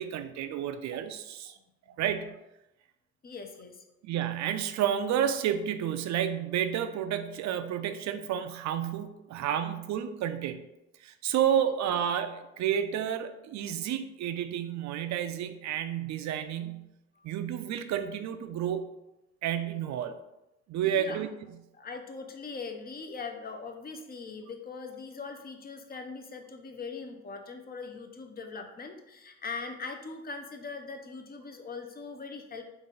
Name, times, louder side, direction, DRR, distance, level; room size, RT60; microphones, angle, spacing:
voice 1, 0.0-1.6 2.0-2.4 4.0-10.6 11.0-16.9 17.2-18.9 19.4-20.2 20.7-21.3, right 9 dB, 65° right, 10 dB, 0.5 m, -30 dB
voice 2, 3.2-3.8 16.3-16.4 17.2-17.3 20.8-21.2 21.7-32.6, left 4 dB, 30° left, 5 dB, 0.6 m, -41 dB
4.0 x 2.5 x 3.8 m, 0.92 s
cardioid pair, 90°, 30 cm